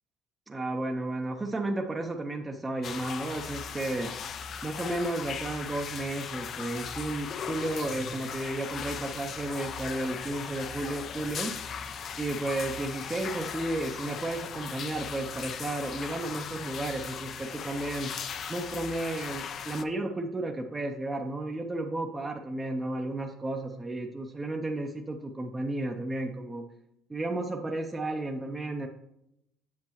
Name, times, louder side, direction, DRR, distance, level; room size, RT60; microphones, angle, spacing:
voice 1, 0.5-11.5 12.2-18.1 18.5-26.7 27.1-28.9, right 2 dB, 15° right, 2 dB, 0.6 m, -33 dB
sound 1, 2.8-19.8, left 7 dB, 50° left, 0.5 m, -38 dB
7.6 x 7.0 x 3.0 m, 0.81 s
cardioid pair, 105°, 0 cm